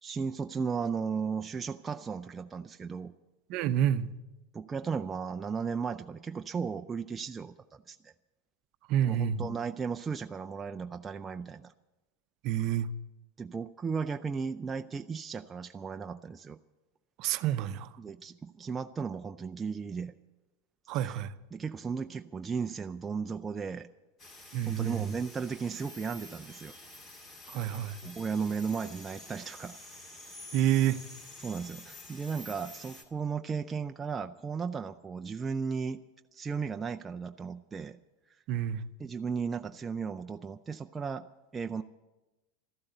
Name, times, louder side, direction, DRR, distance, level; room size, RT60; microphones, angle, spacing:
voice 1, 0.0-3.1 4.5-8.1 9.0-11.7 13.4-16.6 18.0-20.1 20.9-21.2 21.5-23.9 24.7-26.7 28.0-29.8 31.4-36.0 36.3-38.0 39.0-41.2 41.5-41.8, right 5 dB, 15° right, 0.4 m, -35 dB
voice 2, 3.5-4.1 8.9-9.4 12.4-12.9 17.2-17.9 20.9-21.3 24.5-25.1 27.5-28.0 30.5-31.0 38.5-38.9, right 11 dB, 45° right, 0.7 m, -28 dB
sound 1, 24.2-33.0, left 1 dB, 30° left, 2.4 m, -49 dB
13.5 x 12.0 x 8.0 m
supercardioid pair, 135°, 0 cm